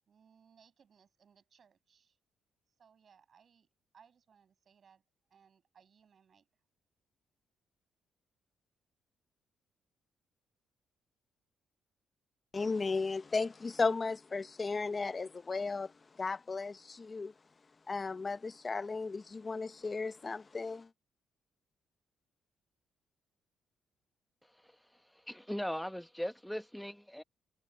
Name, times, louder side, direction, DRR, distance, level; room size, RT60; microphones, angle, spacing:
voice 1, 0.1-2.2 2.8-3.7 3.9-5.0 5.3-6.5, right 7 dB, 50° right, 7.5 m, -65 dB
voice 2, 12.5-17.3 17.9-20.9, left 4 dB, 30° left, 0.8 m, -35 dB
voice 3, 25.3-27.2, equal, 5° left, 1.1 m, -38 dB
cardioid pair, 90°, 0 cm